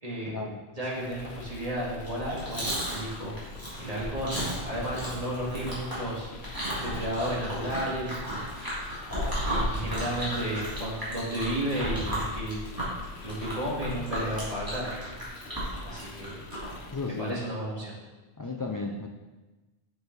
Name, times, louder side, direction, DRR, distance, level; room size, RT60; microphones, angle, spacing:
voice 1, 0.0-0.4 0.8-3.3 3.8-4.4 4.6-6.3 6.8-8.5 9.4-12.6 13.2-14.9 15.8-16.4 17.2-17.9, right 1 dB, 35° right, -6 dB, 2.2 m, -33 dB
sound 1, 0.8-17.5, left 4 dB, 80° left, 1.0 m, -45 dB
Chewing mastication, 2.0-16.8, equal, 20° right, 2.5 m, -34 dB
voice 2, 16.9-17.3 18.4-19.1, left 3 dB, 35° left, 2 dB, 0.3 m, -34 dB
7.1 x 6.4 x 4.0 m, 1.2 s
omnidirectional pair, 1.1 m